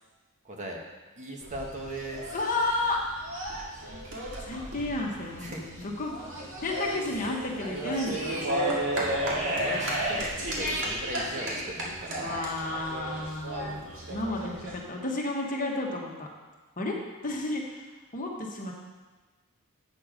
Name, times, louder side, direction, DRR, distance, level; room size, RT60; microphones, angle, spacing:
voice 1, 0.4-0.8 1.2-2.3 5.4-5.9 8.6-12.8, right 1 dB, 35° right, 0 dB, 1.2 m, -39 dB
sound 1, 1.4-14.8, right 1 dB, 60° right, 2.0 m, -33 dB
voice 2, 2.3-3.0 4.4-8.4 12.2-16.3 16.8-17.9 18.1-18.7, left 2 dB, 40° left, -1 dB, 1.3 m, -32 dB
8.4 x 6.9 x 5.1 m, 1.3 s
head